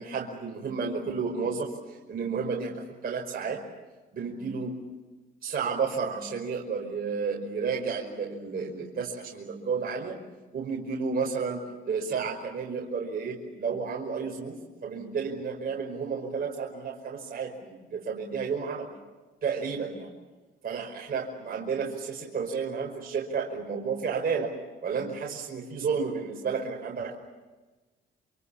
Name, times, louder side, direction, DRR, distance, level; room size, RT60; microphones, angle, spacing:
voice 1, 0.0-3.6 4.1-4.8 5.4-10.2 10.5-18.9 19.4-20.1 20.6-24.5 24.8-27.2, right 5 dB, 50° right, -1 dB, 5.3 m, -32 dB
28.5 x 26.5 x 7.3 m, 1.2 s
cardioid pair, 90°, 20 cm